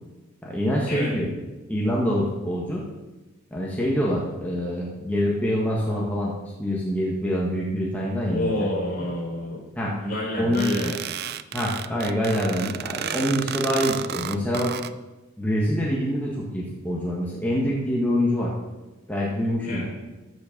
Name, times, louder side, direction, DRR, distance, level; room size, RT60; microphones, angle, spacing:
voice 1, 0.4-1.3 1.7-2.8 3.5-6.3 6.6-8.7 9.7-9.9 10.4-10.6 11.5-14.7 15.4-18.5 19.1-19.9, equal, 10° left, -4 dB, 1.5 m, -25 dB
voice 2, 8.3-9.6 9.9-10.9 19.6-19.8, equal, 45° left, -3 dB, 3.9 m, -28 dB
sound 1, 10.5-14.9, right 9 dB, 50° right, 0.4 m, -32 dB
13.5 x 6.1 x 5.3 m, 1.1 s
head